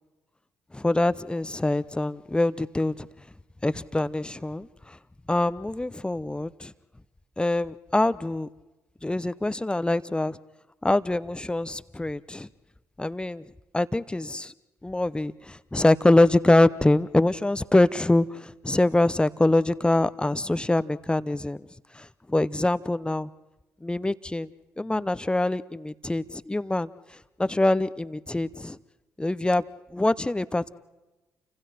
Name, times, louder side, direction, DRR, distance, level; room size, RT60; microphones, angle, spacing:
voice 1, 0.7-2.9 3.6-4.7 5.3-6.7 7.4-8.5 9.0-10.4 10.8-12.5 13.0-13.4 13.7-14.5 14.8-21.6 22.3-23.3 23.8-24.5 24.8-26.9 27.4-28.8 29.2-29.6 29.9-30.7, left 2 dB, 15° left, 16 dB, 0.8 m, -24 dB
30.0 x 26.0 x 4.3 m, 1.1 s
hypercardioid pair, 45°, 7 cm